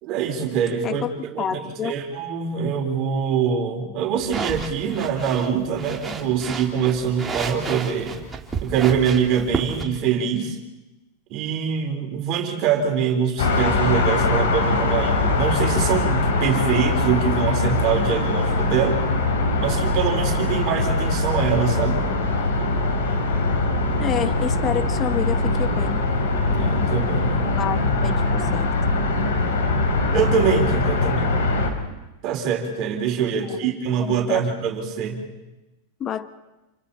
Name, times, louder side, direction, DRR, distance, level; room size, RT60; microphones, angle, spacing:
voice 1, 0.0-8.1 8.6-10.6 11.3-19.0 19.6-22.0 26.4-27.3 30.1-31.3 32.2-35.2, right 7 dB, 45° right, 1 dB, 4.2 m, -24 dB
voice 2, 1.4-1.9 24.0-26.0 27.4-28.7 33.4-33.7 34.0-34.4 36.0-36.3, left 8 dB, 30° left, 11 dB, 1.2 m, -29 dB
sound 1, 4.2-9.8, right 5 dB, 15° right, 2.5 m, -32 dB
sound 2, 13.4-31.7, left 2 dB, 85° left, 3.9 m, -22 dB
29.0 x 24.5 x 4.3 m, 1.0 s
supercardioid pair, 130°, 0 cm